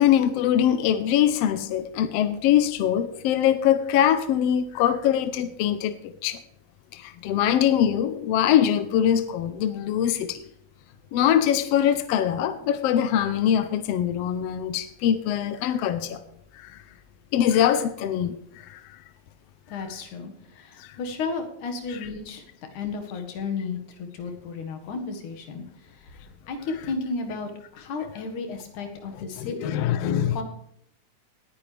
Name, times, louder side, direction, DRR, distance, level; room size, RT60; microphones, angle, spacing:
voice 1, 0.0-6.4 6.9-10.4 11.1-16.2 16.5-16.8 17.3-19.0 19.7-19.8 20.8-21.0 21.9-22.0 26.7-26.9 29.4-30.4, left 10 dB, 75° left, 10 dB, 1.6 m, -23 dB
voice 2, 19.7-22.5 22.7-26.2 26.5-29.8 30.3-30.4, left 4 dB, 90° left, 5 dB, 3.2 m, -33 dB
19.0 x 9.8 x 3.4 m, 0.73 s
omnidirectional pair, 3.4 m